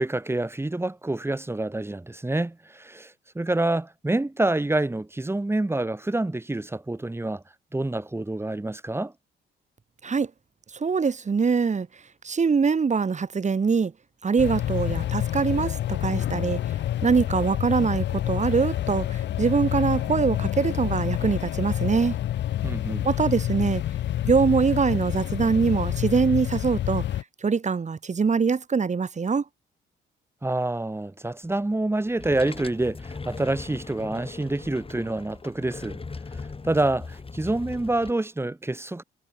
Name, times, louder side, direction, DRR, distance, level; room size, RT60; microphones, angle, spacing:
voice 1, 0.0-7.4 7.7-9.1 22.6-23.1 30.4-36.0 36.6-39.0, right 2 dB, 10° right, 2.5 m, -27 dB
voice 2, 10.7-11.9 12.2-13.9 14.2-16.6 17.0-22.2 23.0-23.8 24.2-27.0 27.4-29.4, right 5 dB, 35° right, 4.9 m, -23 dB
sound 1, 14.4-27.2, left 12 dB, 65° left, 0.8 m, -28 dB
sound 2, 32.1-38.1, left 4 dB, 30° left, 7.0 m, -39 dB
cardioid pair, 90°, 20 cm